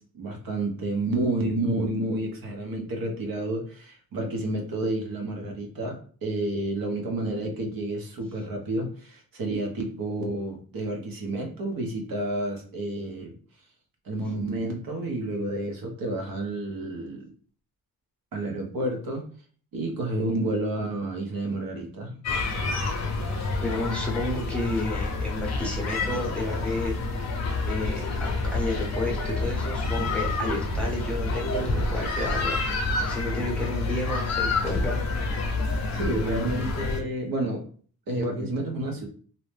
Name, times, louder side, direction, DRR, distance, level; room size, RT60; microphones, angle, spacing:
voice 1, 0.0-13.4 14.0-17.3 18.3-19.3 19.7-22.2 36.0-37.7 38.1-39.1, right 1 dB, 65° right, 2 dB, 0.8 m, -30 dB
sound 1, 22.2-37.0, left 3 dB, 45° left, 0.6 m, -28 dB
voice 2, 23.6-27.1 27.6-35.1, left 1 dB, 5° left, -2 dB, 0.6 m, -31 dB
2.7 x 2.1 x 3.1 m, 0.44 s
wide cardioid pair, 155°, 37 cm